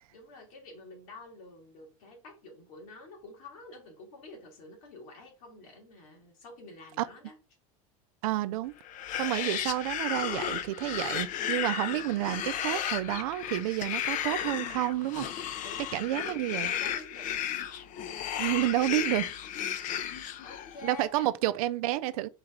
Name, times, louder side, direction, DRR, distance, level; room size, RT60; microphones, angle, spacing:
voice 1, 0.1-7.4 15.6-17.4 19.7-21.5, left 3 dB, 75° left, 2.0 m, -49 dB
voice 2, 8.2-8.7 9.2-15.3 15.9-16.7 18.4-19.3 20.8-22.3, right 15 dB, 80° right, 0.4 m, -30 dB
sound 1, 8.8-20.9, left 10 dB, 45° left, 0.6 m, -34 dB
4.0 x 3.3 x 3.6 m
supercardioid pair, 105°, 18 cm